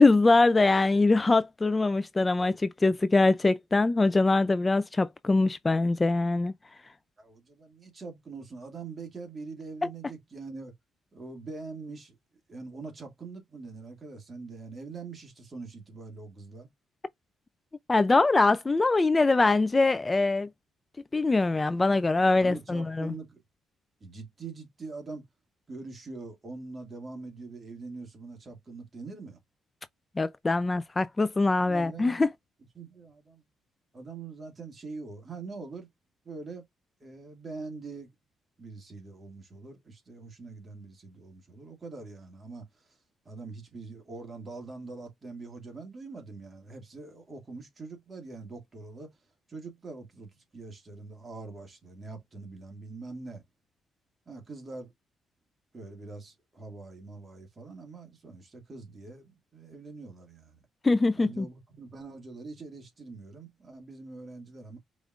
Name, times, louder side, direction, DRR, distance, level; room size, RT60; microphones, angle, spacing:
voice 1, 0.0-6.5 17.9-20.5 21.1-23.1 30.2-32.3 60.8-61.5, left 3 dB, 25° left, 0.3 m, -23 dB
voice 2, 7.2-10.7 11.1-12.2 12.5-16.7 22.4-23.4 24.0-25.3 25.7-29.4 31.6-32.2 32.7-33.4 33.9-35.9 36.2-36.6 37.0-38.1 38.6-43.0 43.3-49.1 49.5-53.4 54.3-54.9 55.7-60.6 61.2-64.8, right 3 dB, 35° right, 2.1 m, -43 dB
5.1 x 3.1 x 2.4 m
cardioid pair, 90°, 0 cm